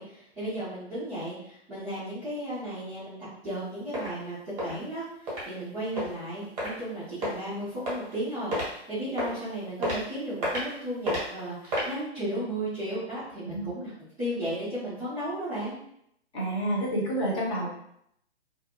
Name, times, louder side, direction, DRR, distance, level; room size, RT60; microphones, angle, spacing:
voice 1, 0.0-3.2 3.4-13.9 14.2-15.8, right 1 dB, ahead, -20 dB, 0.4 m, -34 dB
sound 1, 3.5-3.6 3.9-4.1 4.6-4.7 5.3-5.4 6.0-6.1 6.6-6.7 7.2-7.4 7.9-8.2 8.5-8.7 9.2-9.4 9.8-10.0 10.4-10.7 11.1-11.2 11.6-11.9, equal, 20° right, 0.9 m, -29 dB
voice 2, 16.3-17.7, right 1 dB, 25° left, -5 dB, 0.8 m, -28 dB
2.4 x 2.1 x 2.8 m, 0.73 s
figure-of-eight pair, 125°, 33 cm